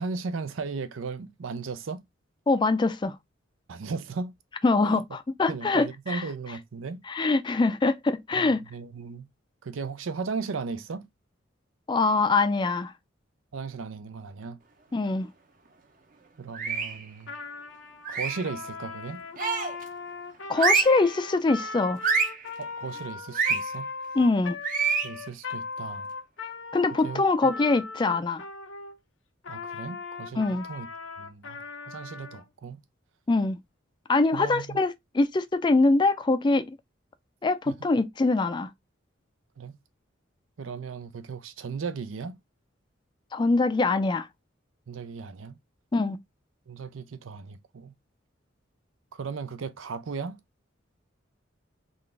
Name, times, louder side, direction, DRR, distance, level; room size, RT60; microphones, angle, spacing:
voice 1, 0.0-2.0 3.7-4.3 4.9-5.0 5.5-7.0 8.3-9.3 9.6-11.1 13.5-14.6 16.4-17.3 18.1-19.2 22.6-23.9 25.0-26.1 27.0-27.5 29.5-30.9 31.2-32.8 34.3-34.8 37.7-37.8 39.6-39.7 40.6-42.4 44.9-45.6 46.7-47.9 49.1-50.4, right 4 dB, 90° right, 0.5 m, -36 dB
voice 2, 2.5-3.2 4.6-6.2 7.1-8.6 11.9-12.9 14.9-15.3 20.5-22.0 24.1-24.6 26.7-28.4 30.4-30.6 33.3-33.6 34.1-36.7 37.4-38.7 43.3-44.3 45.9-46.2, left 3 dB, 25° left, 0.3 m, -23 dB
sound 1, 16.5-17.0 18.0-18.5 19.4-19.8 20.5-21.0 22.0-22.4 23.3-23.6 24.6-25.1, right 5 dB, 45° right, 0.7 m, -26 dB
Trumpet, 17.2-29.0 29.4-32.4, left 4 dB, 75° left, 0.7 m, -39 dB
3.8 x 2.5 x 3.2 m
head